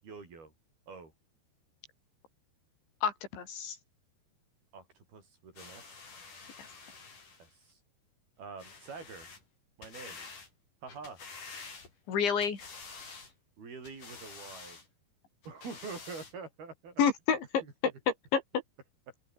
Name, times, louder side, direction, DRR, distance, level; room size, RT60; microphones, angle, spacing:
voice 1, 0.0-0.5 0.9-1.1 4.7-6.1 7.4-7.8 8.4-9.3 9.8-10.2 10.8-11.2 13.6-14.8 15.5-17.0 17.6-17.7, right 4 dB, 55° right, 9.0 m, -46 dB
voice 2, 3.0-3.8 6.6-6.7 10.0-10.1 12.1-12.7 17.0-17.5 18.3-18.4, left 7 dB, 85° left, 7.0 m, -29 dB
sound 1, 5.6-7.5 8.6-9.4 9.8-10.5 10.9-12.1 12.4-13.3 13.8-14.9 15.4-16.3 17.0-17.1, left 4 dB, 45° left, 7.3 m, -49 dB
open air
omnidirectional pair, 5.1 m